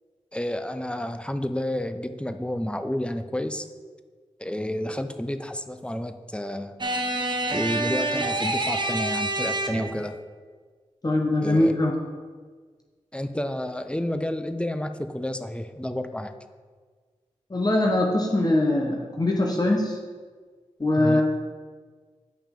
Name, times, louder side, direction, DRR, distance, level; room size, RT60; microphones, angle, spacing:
voice 1, 0.3-3.7 4.4-6.7 7.5-10.2 11.4-11.7 13.1-16.3 21.0-21.2, left 1 dB, 10° left, 9 dB, 0.6 m, -30 dB
sound 1, 6.8-10.1, right 2 dB, 40° right, 0.8 m, -27 dB
voice 2, 11.0-12.0 17.5-20.0 20.8-21.2, left 1 dB, 30° left, -1 dB, 1.0 m, -22 dB
8.6 x 5.6 x 3.7 m, 1.5 s
cardioid pair, 40°, 12 cm